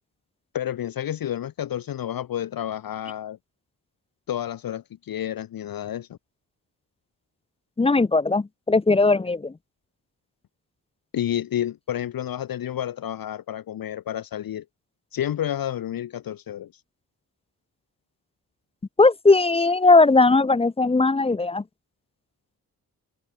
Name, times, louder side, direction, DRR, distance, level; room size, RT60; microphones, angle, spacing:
voice 1, 0.5-3.4 4.3-6.2 11.1-14.6 15.1-16.7, left 11 dB, 60° left, 0.7 m, -30 dB
voice 2, 7.8-9.5 19.0-21.6, left 3 dB, 15° left, 0.5 m, -18 dB
open air
cardioid pair, 85°, 39 cm